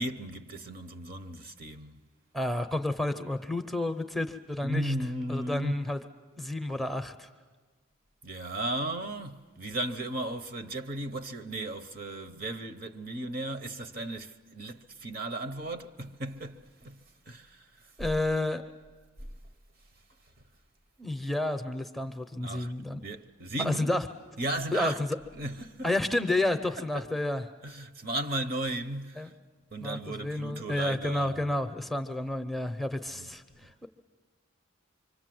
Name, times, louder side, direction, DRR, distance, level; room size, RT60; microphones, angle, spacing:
voice 1, 0.0-2.0 4.6-5.8 8.2-17.0 17.3-17.9 22.4-22.7 23.0-23.9 24.4-25.0 25.3-25.9 26.9-27.1 27.6-29.3 29.7-31.5 33.1-33.3, right 1 dB, 45° right, 0.9 m, -35 dB
voice 2, 2.3-4.9 5.3-6.0 6.4-7.3 18.0-18.6 21.0-23.0 23.6-24.0 24.7-25.1 25.8-27.5 29.2-29.3 29.8-33.9, left 1 dB, ahead, 0.7 m, -30 dB
25.5 x 25.0 x 7.8 m
head